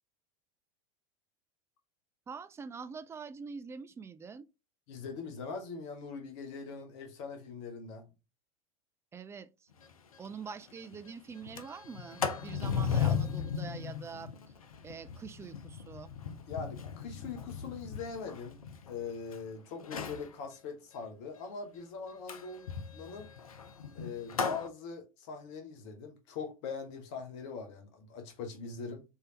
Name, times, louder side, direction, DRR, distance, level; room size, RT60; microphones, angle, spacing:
voice 1, 2.3-4.5 9.1-9.5 10.2-14.3 14.8-16.1, right 5 dB, 15° right, 0.4 m, -45 dB
voice 2, 4.9-8.1 16.5-18.6 18.8-23.3 23.9-29.0, left 5 dB, 55° left, 1.1 m, -42 dB
Sliding door, 9.8-9.9 10.3-10.4 10.7-11.0 11.4-19.4 19.8-20.3 22.3-24.7, left 7 dB, 80° left, 0.6 m, -36 dB
4.5 x 3.3 x 2.8 m
figure-of-eight pair, 85°, 18 cm